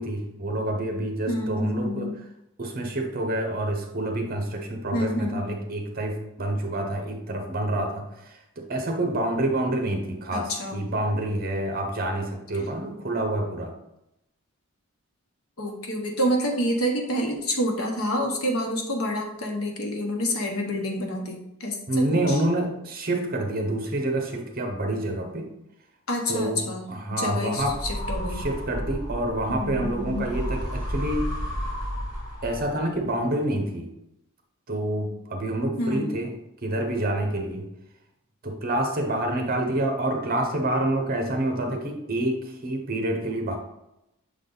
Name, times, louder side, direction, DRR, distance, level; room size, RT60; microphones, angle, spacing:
voice 1, 0.0-2.1 2.6-13.7 21.9-25.5 26.3-26.6 26.9-27.8 28.4-31.3 32.4-33.9 34.7-36.3 36.6-37.7 38.4-43.6, right 1 dB, 45° right, 3 dB, 1.0 m, -27 dB
voice 2, 1.3-2.1 4.9-5.5 10.3-10.8 15.6-22.4 26.1-28.4 29.5-30.3 35.8-36.2, equal, 85° left, 2 dB, 1.2 m, -28 dB
sound 1, 27.6-32.9, equal, 20° left, 1.9 m, -32 dB
6.5 x 3.7 x 3.9 m, 0.85 s
head